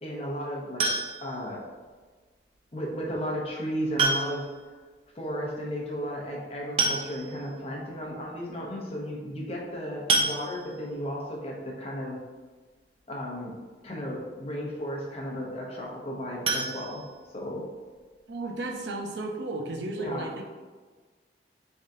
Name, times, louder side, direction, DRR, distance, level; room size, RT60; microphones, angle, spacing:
voice 1, 0.0-0.9 1.2-1.6 2.7-4.5 5.1-12.2 13.1-13.6 13.8-17.0 17.3-17.6 19.9-20.3, equal, 35° left, -2 dB, 0.7 m, -34 dB
sound 1, 0.8-1.4 2.9-3.0 4.0-4.6 4.9-5.0 5.3-5.4 6.4-6.5 6.8-7.5 8.1-8.2 8.5-8.7 10.1-10.9 16.4-17.6 18.0-18.1 18.5-18.6 19.0-19.1, right 3 dB, 30° right, 0.4 m, -28 dB
voice 2, 18.3-20.4, right 2 dB, 80° right, 1 dB, 0.6 m, -34 dB
3.8 x 3.5 x 2.7 m, 1.4 s
head